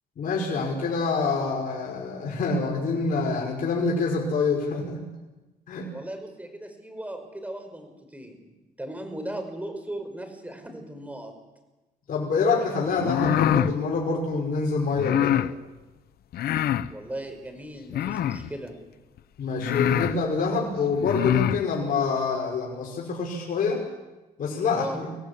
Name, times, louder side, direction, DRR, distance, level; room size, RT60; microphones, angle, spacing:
voice 1, 0.2-5.0 5.7-5.9 12.1-15.4 19.4-23.8 24.4-25.1, left 4 dB, 60° left, -2 dB, 5.7 m, -26 dB
voice 2, 5.9-8.4 8.8-11.3 16.9-18.7 24.7-25.0, right 1 dB, 10° right, 5 dB, 5.4 m, -37 dB
sound 1, 13.0-13.7 15.0-15.5 16.3-16.9 17.9-18.5 19.2-19.3 19.6-20.2 21.0-21.6, left 11 dB, 75° left, 0.9 m, -24 dB
24.0 x 17.0 x 8.5 m, 1.1 s
cardioid pair, 100°, 16 cm